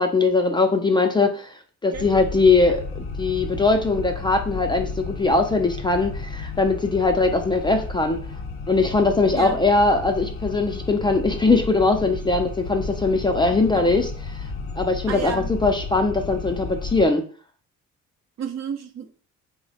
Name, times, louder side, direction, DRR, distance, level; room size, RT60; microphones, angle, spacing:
voice 1, 0.0-1.5 1.8-8.2 8.7-14.1 14.8-17.2, left 3 dB, 15° left, 4 dB, 0.4 m, -21 dB
sound 1, 1.9-17.1, left 4 dB, 50° left, 0.7 m, -33 dB
voice 2, 15.1-15.5 18.4-19.1, right 7 dB, 60° right, 6 dB, 0.6 m, -31 dB
3.1 x 2.1 x 3.9 m, 0.42 s
cardioid pair, 90°, 30 cm